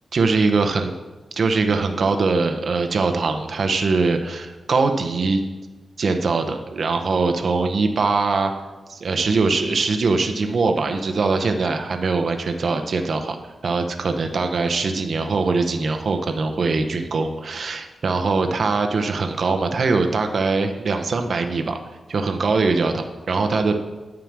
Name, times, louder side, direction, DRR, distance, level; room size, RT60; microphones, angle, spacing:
voice 1, 0.1-0.9 1.4-5.4 6.0-8.5 8.9-13.4 13.6-21.8 22.1-23.8, right 4 dB, 60° right, 5 dB, 0.8 m, -22 dB
9.2 x 5.0 x 7.3 m, 1.2 s
wide cardioid pair, 115°, 0 cm